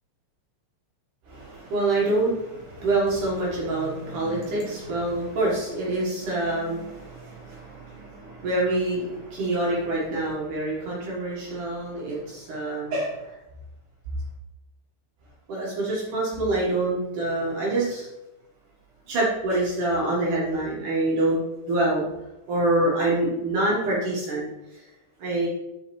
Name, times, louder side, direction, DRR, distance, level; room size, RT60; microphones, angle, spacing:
voice 1, 1.3-13.3 15.5-18.1 19.1-21.4 21.7-22.0 22.5-24.5 24.7-24.8 25.2-25.5, right 2 dB, 60° right, -4 dB, 2.2 m, -26 dB
7.5 x 7.2 x 3.2 m, 0.95 s
omnidirectional pair, 5.7 m